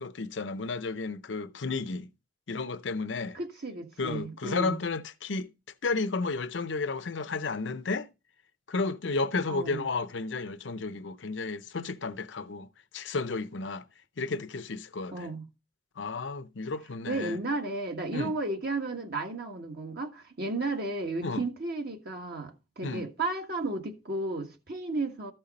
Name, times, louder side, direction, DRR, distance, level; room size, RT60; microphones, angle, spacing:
voice 1, 0.0-2.1 2.5-3.4 4.0-5.5 5.8-8.1 8.7-12.7 12.9-13.8 14.2-15.3 16.0-17.4 18.1-18.3 21.2-21.4 22.8-23.1, left 3 dB, 80° left, 0.7 m, -32 dB
voice 2, 3.3-4.7 9.5-9.8 15.1-15.4 17.1-25.3, right 2 dB, 60° right, 1.6 m, -33 dB
13.5 x 5.5 x 4.1 m
head